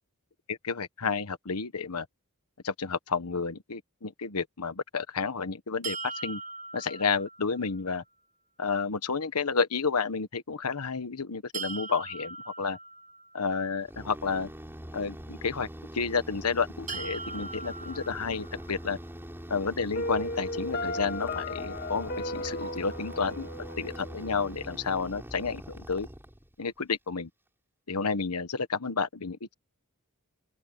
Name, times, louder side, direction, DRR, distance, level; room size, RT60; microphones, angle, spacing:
voice 1, 0.5-2.1 2.6-6.4 6.7-8.0 8.6-12.8 13.3-14.5 14.9-15.7 15.9-19.0 19.5-23.5 23.8-26.1 26.6-27.3 27.9-29.5, left 5 dB, 90° left, 1.2 m, -31 dB
sound 1, 5.8-7.8 11.5-13.6 16.9-18.9, right 4 dB, 35° right, 1.1 m, -40 dB
sound 2, 13.8-26.7, equal, 10° right, 4.9 m, -43 dB
Piano, 19.9-24.9, left 1 dB, 45° left, 2.1 m, -36 dB
open air
head